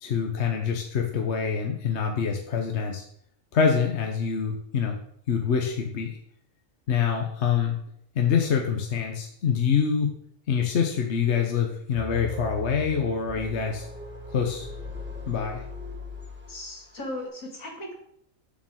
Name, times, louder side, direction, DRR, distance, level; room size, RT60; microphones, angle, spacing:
voice 1, 0.0-3.0 3.5-5.0 5.3-6.1 6.9-7.8 8.1-10.1 10.5-13.9 14.3-14.7 15.3-15.6, left 6 dB, 55° left, 2 dB, 1.2 m, -25 dB
sound 1, 11.9-16.9, left 2 dB, 10° right, 1.6 m, -39 dB
voice 2, 16.5-17.9, left 1 dB, 75° left, 0 dB, 2.7 m, -37 dB
7.8 x 6.4 x 6.4 m, 0.69 s
omnidirectional pair, 1.4 m